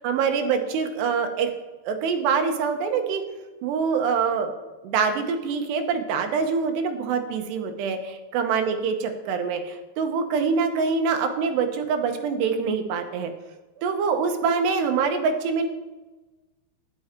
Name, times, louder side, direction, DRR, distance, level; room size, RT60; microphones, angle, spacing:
voice 1, 0.0-1.5 1.9-3.2 3.6-4.5 4.8-13.3 13.8-15.7, right 5 dB, 75° right, 5 dB, 3.1 m, -25 dB
11.0 x 10.0 x 4.4 m, 1.2 s
omnidirectional pair, 5.0 m